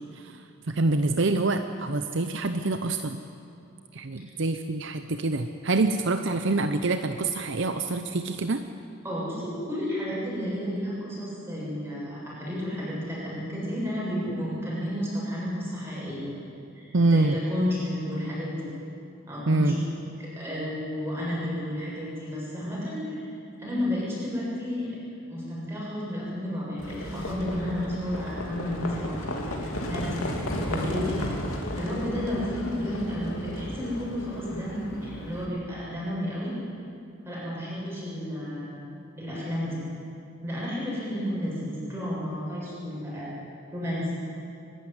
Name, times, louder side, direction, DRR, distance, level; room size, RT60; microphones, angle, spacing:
voice 1, 0.7-3.2 3.9-8.6 16.9-17.3 19.5-19.8, right 2 dB, 60° right, 8 dB, 0.7 m, -26 dB
voice 2, 9.0-16.3 16.7-18.7 19.3-19.8 20.2-23.2 23.6-24.9 25.3-30.3 30.6-31.3 31.8-36.5 37.2-39.8 40.4-43.3 43.7-44.2, equal, 10° right, -7 dB, 7.2 m, -32 dB
Livestock farm animals working animals, 26.8-35.4, left 1 dB, 85° left, 2.9 m, -34 dB
24.5 x 12.0 x 9.6 m, 2.6 s
head